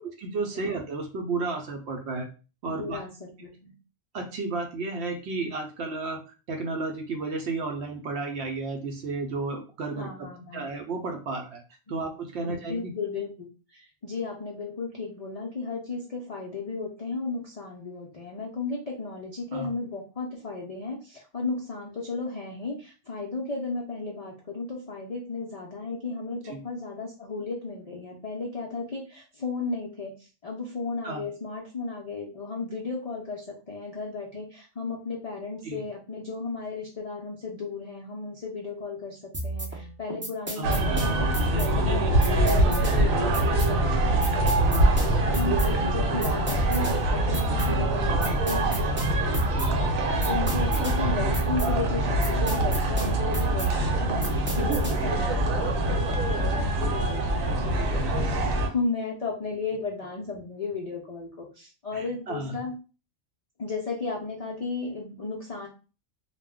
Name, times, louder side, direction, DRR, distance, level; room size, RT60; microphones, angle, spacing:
voice 1, 0.2-2.3 2.6-3.0 4.1-6.2 6.5-10.3 10.5-11.6 11.9-12.9 19.5-19.7 26.4-26.6 31.0-31.2 35.6-35.8 40.6-40.7 48.2-48.4 50.7-50.8 55.0-55.1 61.9-62.5, right 3 dB, 65° right, 4 dB, 0.7 m, -32 dB
voice 2, 2.7-3.7 9.9-10.7 11.9-12.0 12.4-41.2 41.5-62.7 63.6-65.7, left 4 dB, 65° left, -2 dB, 0.3 m, -35 dB
sound 1, 39.3-55.2, right 1 dB, 15° right, 0.3 m, -34 dB
sound 2, 40.6-58.7, right 1 dB, 85° right, 1.1 m, -24 dB
2.3 x 2.1 x 3.5 m, 0.34 s
omnidirectional pair, 1.4 m